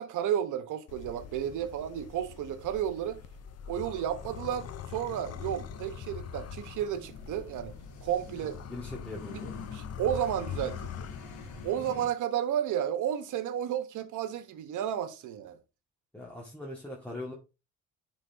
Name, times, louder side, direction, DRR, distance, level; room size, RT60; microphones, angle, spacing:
voice 1, 0.0-3.2 3.7-7.7 8.0-8.6 9.3-9.4 9.7-11.1 11.6-15.6, right 10 dB, 80° right, 1.1 m, -32 dB
sound 1, 0.9-11.7, left 8 dB, 55° left, 0.7 m, -43 dB
sound 2, 5.0-12.1, left 3 dB, 90° left, 2.1 m, -47 dB
voice 2, 8.7-9.6 16.1-17.3, left 1 dB, 5° left, 1.6 m, -41 dB
9.9 x 3.9 x 2.7 m
cardioid pair, 90°, 30 cm